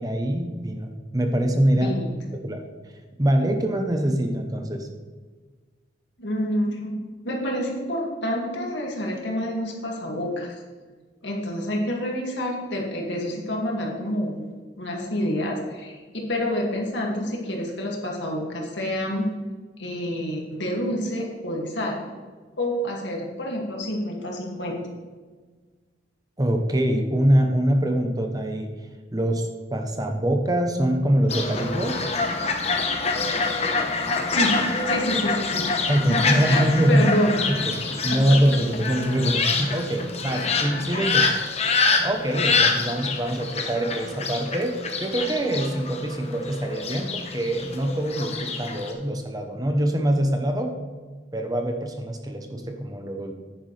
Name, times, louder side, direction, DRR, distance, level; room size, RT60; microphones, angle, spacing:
voice 1, 0.0-1.9 2.4-2.7 3.2-4.9 26.4-28.7 29.1-32.1 35.9-37.1 37.5-37.6 37.8-41.3 42.0-50.7 51.3-53.3, right 1 dB, 20° right, 4 dB, 0.8 m, -24 dB
voice 2, 1.8-2.1 6.2-6.9 7.2-10.6 11.2-14.5 14.8-19.3 19.8-22.0 22.6-24.8 34.3-34.6 34.9-37.6 41.1-41.5, equal, 75° left, -1 dB, 2.2 m, -28 dB
Fowl, 31.3-48.9, left 4 dB, 35° left, 1.0 m, -26 dB
10.5 x 9.6 x 3.3 m, 1.4 s
head